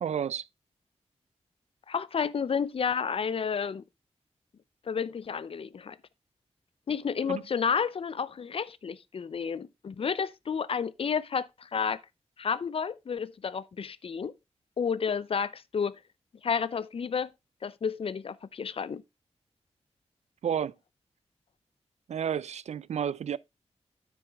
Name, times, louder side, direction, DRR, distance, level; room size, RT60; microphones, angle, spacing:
voice 1, 0.0-0.5 7.3-7.4 20.4-20.7 22.1-23.4, right 8 dB, 75° right, 0.4 m, -31 dB
voice 2, 1.9-3.8 4.9-6.0 6.9-12.0 12.4-14.3 14.8-16.0 16.4-17.3 17.6-19.0, left 6 dB, 55° left, 0.5 m, -31 dB
9.4 x 6.3 x 3.4 m
wide cardioid pair, 130°, 11 cm